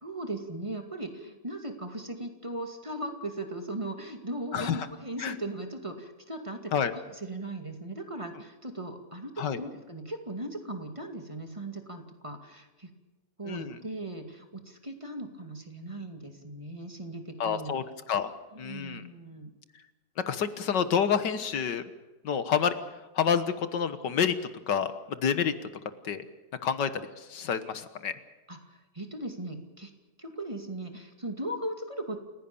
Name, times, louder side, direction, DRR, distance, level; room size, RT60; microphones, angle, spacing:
voice 1, 0.0-12.9 13.4-17.8 18.5-19.5 28.5-29.9 30.2-32.2, right 1 dB, 15° right, 4 dB, 2.4 m, -38 dB
voice 2, 4.5-4.9 5.2-5.4 6.7-6.9 9.4-9.6 13.5-13.8 17.4-17.8 18.1-18.3 18.6-19.0 20.2-21.8 22.2-22.7 23.2-24.3 24.7-25.5 26.0-26.2 26.6-26.9 27.2-28.1, left 7 dB, 80° left, 11 dB, 1.9 m, -28 dB
29.0 x 16.5 x 7.0 m, 1.2 s
omnidirectional pair, 1.8 m